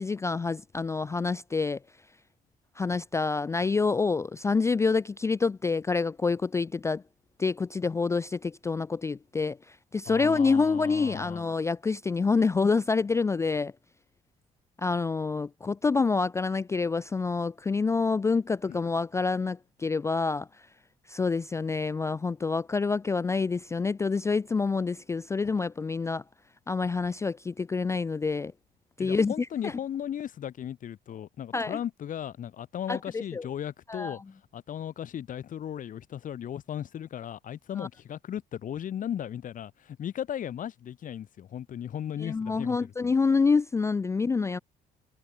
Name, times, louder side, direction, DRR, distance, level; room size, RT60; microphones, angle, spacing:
voice 1, 0.0-1.8 2.8-7.0 7.4-13.7 14.8-20.5 21.1-26.2 26.7-28.5 29.0-29.7 31.5-31.8 32.9-33.5 33.9-34.2 37.8-37.9 42.2-44.6, left 4 dB, 15° left, 0.3 m, -27 dB
voice 2, 10.1-11.4 18.7-18.8 29.0-34.2 34.5-43.1, left 10 dB, 50° left, 2.4 m, -36 dB
cardioid pair, 110°, 17 cm